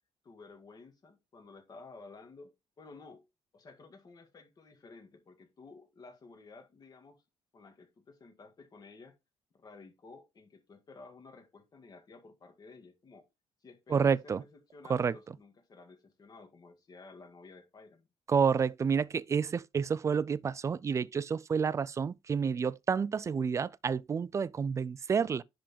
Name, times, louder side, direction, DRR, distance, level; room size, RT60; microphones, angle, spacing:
voice 1, 0.2-3.2 3.5-7.2 7.5-9.1 9.5-13.3 13.6-18.1, left 3 dB, 35° left, 2.1 m, -53 dB
voice 2, 13.9-14.4 14.9-15.2 18.3-25.4, right 6 dB, 25° right, 0.3 m, -29 dB
10.0 x 3.8 x 4.4 m
cardioid pair, 140°, 11 cm